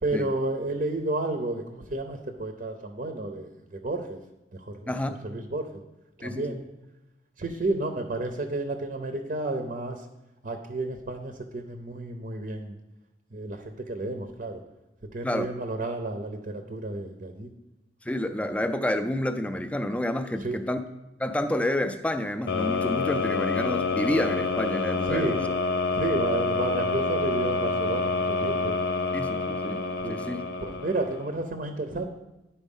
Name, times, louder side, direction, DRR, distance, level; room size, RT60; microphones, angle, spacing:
voice 1, 0.0-4.2 4.5-4.8 5.2-5.7 6.2-6.6 7.4-10.0 10.4-12.8 13.3-14.6 15.1-17.5 20.4-20.6 25.1-25.4 25.9-28.8 30.0-30.2 30.6-32.1, right 2 dB, 50° right, 5 dB, 0.6 m, -31 dB
voice 2, 4.9-5.2 6.2-6.6 15.2-15.5 18.1-20.8 21.2-25.5 29.1-29.8 30.1-30.5, left 1 dB, 10° left, 9 dB, 0.4 m, -29 dB
sound 1, 22.5-31.4, left 3 dB, 60° left, 0.6 m, -28 dB
9.9 x 4.4 x 5.4 m, 0.98 s
head